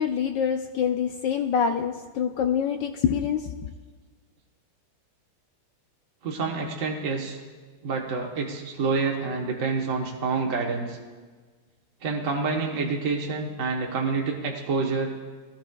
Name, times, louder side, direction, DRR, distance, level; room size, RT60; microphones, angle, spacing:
voice 1, 0.0-3.7, left 7 dB, 75° left, 6 dB, 1.1 m, -26 dB
voice 2, 6.2-7.4 7.8-11.0 12.0-15.1, right 4 dB, 45° right, -1 dB, 1.3 m, -27 dB
18.5 x 15.0 x 2.3 m, 1.4 s
omnidirectional pair, 2.4 m